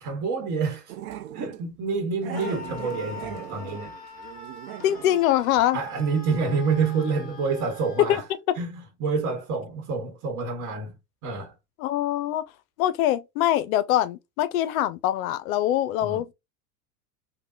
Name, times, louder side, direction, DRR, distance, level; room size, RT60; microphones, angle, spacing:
voice 1, 0.0-0.9 1.3-3.9 5.7-8.2 8.6-11.0 11.2-11.5 16.0-16.2, right 4 dB, 35° right, 1.2 m, -28 dB
Growling, 0.9-1.6 2.2-5.2 5.5-5.7 6.0-6.1, right 12 dB, 65° right, 0.6 m, -39 dB
Screaming, 2.3-8.2, left 4 dB, 15° left, 1.7 m, -43 dB
voice 2, 4.8-5.8 8.0-8.2 8.5-8.6 11.8-12.4 12.8-16.3, left 12 dB, 60° left, 0.5 m, -23 dB
3.4 x 2.2 x 2.5 m
hypercardioid pair, 95°, 49 cm